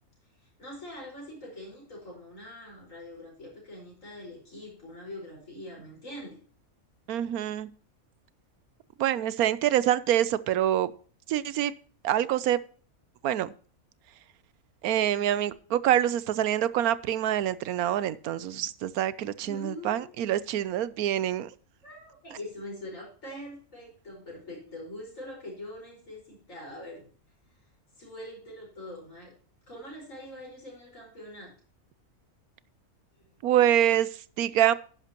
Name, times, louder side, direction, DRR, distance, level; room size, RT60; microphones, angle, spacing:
voice 1, 0.4-6.4 19.4-20.1 21.8-27.1 28.0-29.3 29.7-31.5, left 1 dB, 60° left, -2 dB, 5.4 m, -43 dB
voice 2, 7.1-7.7 9.0-10.9 11.3-11.7 12.0-12.6 13.2-13.5 14.8-21.5 33.4-34.7, right 11 dB, 90° right, 17 dB, 1.1 m, -26 dB
11.0 x 10.5 x 2.9 m, 0.42 s
omnidirectional pair, 1.5 m